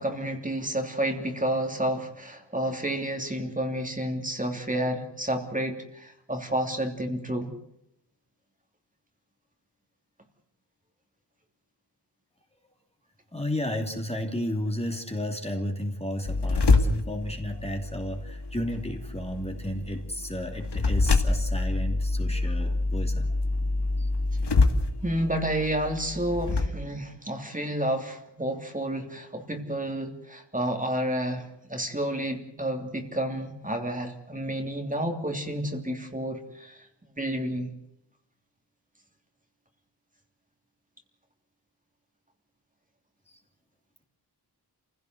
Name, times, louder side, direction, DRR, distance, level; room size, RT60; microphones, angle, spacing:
voice 1, 0.0-7.5 25.0-36.9 37.2-37.7, right 1 dB, 20° right, 3 dB, 3.2 m, -30 dB
voice 2, 13.3-23.3 24.0-24.1 43.3-43.4, left 1 dB, 15° left, 3 dB, 2.9 m, -33 dB
sound 1, 16.2-26.7, left 3 dB, 75° left, 2.2 m, -26 dB
28.5 x 16.5 x 7.9 m, 0.80 s
wide cardioid pair, 100°, 41 cm